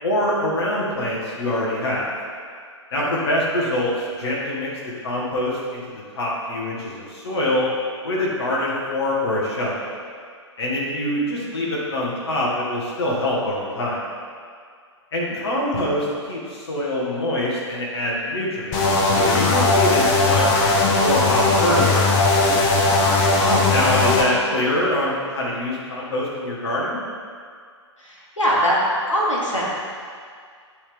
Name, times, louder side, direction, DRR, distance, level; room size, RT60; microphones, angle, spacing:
voice 1, 0.0-2.1 2.9-4.7 5.0-5.8 6.1-7.7 8.0-9.9 10.6-14.0 15.1-22.3 23.7-27.0, left 1 dB, 55° left, -5 dB, 1.3 m, -24 dB
sound 1, 18.7-24.2, left 2 dB, 30° left, 0.7 m, -18 dB
voice 2, 23.4-23.9 28.0-28.8 29.1-29.7, equal, 85° left, -5 dB, 1.5 m, -22 dB
9.9 x 3.5 x 3.4 m, 2.1 s
figure-of-eight pair, 115°, 16 cm